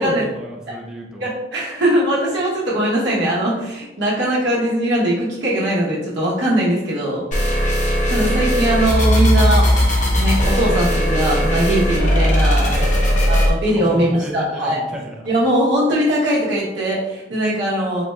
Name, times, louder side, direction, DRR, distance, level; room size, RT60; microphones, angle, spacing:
voice 1, 0.0-1.3 12.8-13.1 13.3-15.3, right 1 dB, 5° right, -1 dB, 0.4 m, -31 dB
voice 2, 1.2-7.2 8.1-9.8 10.1-12.7 13.3-14.8 15.3-18.0, right 1 dB, 75° right, -7 dB, 0.8 m, -20 dB
sound 1, 7.3-13.5, equal, 40° left, 0.7 m, -17 dB
3.9 x 2.2 x 3.1 m, 1.0 s
head